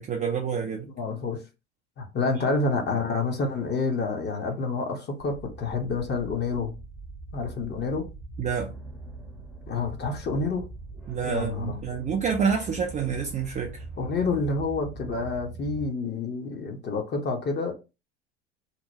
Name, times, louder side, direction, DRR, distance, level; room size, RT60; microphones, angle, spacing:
voice 1, 0.0-0.9 8.4-8.7 11.1-13.7, right 6 dB, 20° right, 0.4 m, -28 dB
voice 2, 0.8-1.4 2.0-6.7 7.3-8.1 9.7-10.7 11.2-11.8 14.0-17.7, left 4 dB, 30° left, 0.9 m, -28 dB
sound 1, 5.2-15.9, right 2 dB, ahead, 0.8 m, -42 dB
2.9 x 2.1 x 2.7 m
hypercardioid pair, 80°, 36 cm